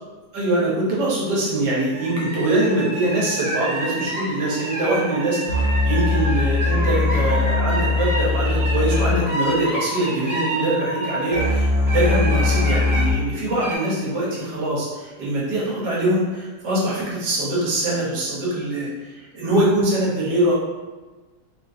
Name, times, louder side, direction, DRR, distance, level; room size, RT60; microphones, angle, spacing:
voice 1, 0.3-20.5, right 1 dB, 85° right, -5 dB, 1.5 m, -23 dB
sound 1, 1.9-11.5 11.9-13.1 13.5-13.8, right 1 dB, 40° right, 1.5 m, -29 dB
sound 2, 5.5-13.1, left 3 dB, 85° left, 1.8 m, -22 dB
3.6 x 2.4 x 2.6 m, 1.3 s
omnidirectional pair, 1.8 m